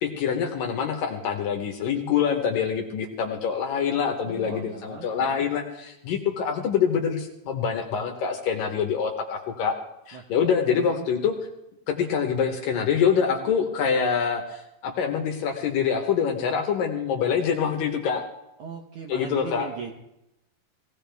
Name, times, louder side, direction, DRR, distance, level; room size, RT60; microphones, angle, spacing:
voice 1, 0.0-9.7 10.1-11.3 11.9-18.2 19.1-19.7, left 7 dB, 65° left, 3 dB, 2.4 m, -25 dB
voice 2, 4.2-5.5 10.1-10.3 10.9-11.1 18.6-19.9, right 7 dB, 70° right, 0 dB, 1.9 m, -39 dB
19.5 x 16.5 x 3.4 m, 0.87 s
omnidirectional pair, 4.9 m